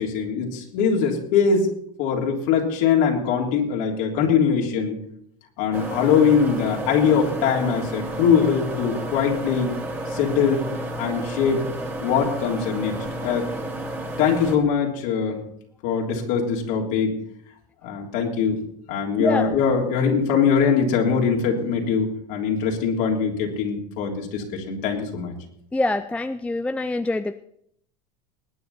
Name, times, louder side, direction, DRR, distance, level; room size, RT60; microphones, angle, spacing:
voice 1, 0.0-1.7 2.0-5.0 5.6-9.7 10.1-10.7 11.0-11.6 12.0-12.9 13.2-13.5 14.2-15.4 15.8-17.2 17.8-18.6 18.9-25.3, left 6 dB, 70° left, -1 dB, 3.4 m, -22 dB
sound 1, 5.7-14.6, right 1 dB, 10° right, 2.5 m, -31 dB
voice 2, 19.2-19.5 25.7-27.4, left 2 dB, 5° left, 9 dB, 0.5 m, -25 dB
20.5 x 9.2 x 4.2 m, 0.69 s
supercardioid pair, 125°, 17 cm